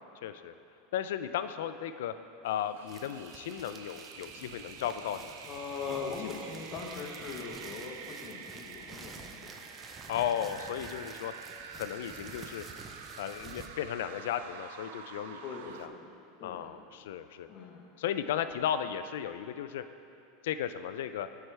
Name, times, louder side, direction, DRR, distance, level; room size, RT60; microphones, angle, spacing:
voice 1, 0.2-0.5 0.9-2.1 2.4-5.3 6.2-6.3 10.1-11.3 11.7-12.7 13.2-15.4 15.8-15.9 16.4-17.5 18.0-19.8 20.4-21.3, left 9 dB, 80° left, 11 dB, 0.3 m, -35 dB
sound 1, 2.5-15.9, right 6 dB, 75° right, 0.4 m, -48 dB
sound 2, 2.9-13.7, right 4 dB, 15° right, 0.4 m, -50 dB
voice 2, 5.4-9.5 9.9-10.1 15.4-16.1 16.4-16.8 17.5-17.9, left 5 dB, 35° left, 1 dB, 0.9 m, -41 dB
12.5 x 4.7 x 3.3 m, 2.6 s
supercardioid pair, 160°, 0 cm